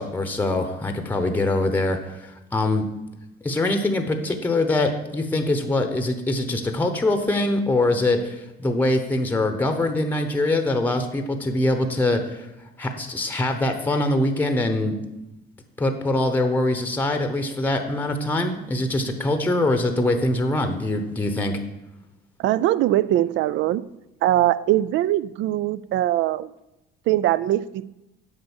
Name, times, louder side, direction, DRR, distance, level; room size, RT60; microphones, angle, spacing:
voice 1, 0.0-2.9 3.4-12.5 12.8-15.0 15.8-21.6, left 2 dB, 10° left, 6 dB, 0.8 m, -23 dB
voice 2, 22.4-23.8 24.2-26.5 27.1-27.9, right 14 dB, 65° right, 18 dB, 0.4 m, -21 dB
7.9 x 5.3 x 7.1 m, 0.94 s
cardioid pair, 125°, 21 cm